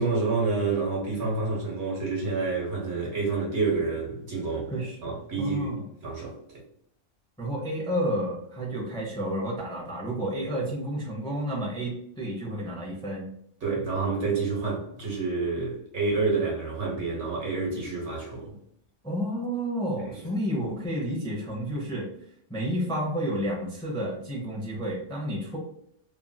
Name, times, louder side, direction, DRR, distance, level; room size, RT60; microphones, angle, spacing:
voice 1, 0.0-4.7 5.0-5.7 6.0-6.3 13.6-18.5 20.1-20.2, right 4 dB, 65° right, -3 dB, 1.3 m, -28 dB
voice 2, 4.7-5.0 5.4-5.8 7.4-13.3 19.0-22.1 22.5-25.6, equal, 5° left, -3 dB, 0.6 m, -30 dB
3.0 x 2.5 x 2.2 m, 0.68 s
omnidirectional pair, 1.3 m